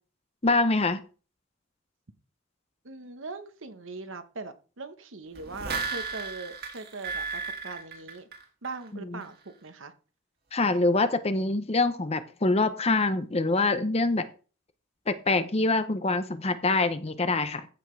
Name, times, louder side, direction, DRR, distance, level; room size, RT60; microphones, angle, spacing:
voice 1, 0.4-1.0 9.1-9.2 10.5-14.2 15.1-17.7, left 3 dB, 30° left, 11 dB, 0.7 m, -25 dB
voice 2, 2.8-8.3 8.6-9.9, right 3 dB, 65° right, 10 dB, 1.1 m, -41 dB
sound 1, 5.3-8.9 9.2-9.3, right 4 dB, 50° right, 1.8 m, -35 dB
15.0 x 5.8 x 3.3 m, 0.36 s
head